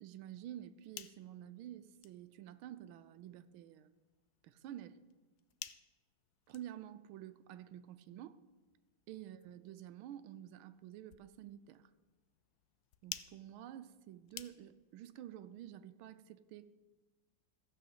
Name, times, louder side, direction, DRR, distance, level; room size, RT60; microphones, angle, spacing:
voice 1, 0.0-3.9 4.4-5.0 6.5-8.4 9.1-11.9 13.0-16.7, right 11 dB, 85° right, 1.4 m, -50 dB
sound 1, 0.6-15.0, left 12 dB, 85° left, 0.8 m, -55 dB
14.5 x 5.1 x 7.8 m
omnidirectional pair, 2.3 m